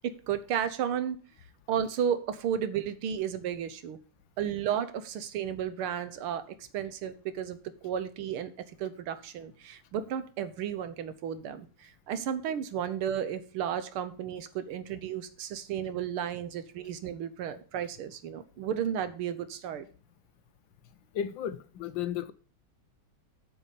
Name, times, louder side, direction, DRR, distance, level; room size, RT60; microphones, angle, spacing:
voice 1, 0.0-1.2 1.7-4.0 4.4-8.5 8.8-19.9, right 9 dB, 85° right, 1.8 m, -33 dB
voice 2, 21.1-22.3, left 9 dB, 75° left, 1.3 m, -33 dB
9.2 x 5.5 x 5.6 m
omnidirectional pair, 2.3 m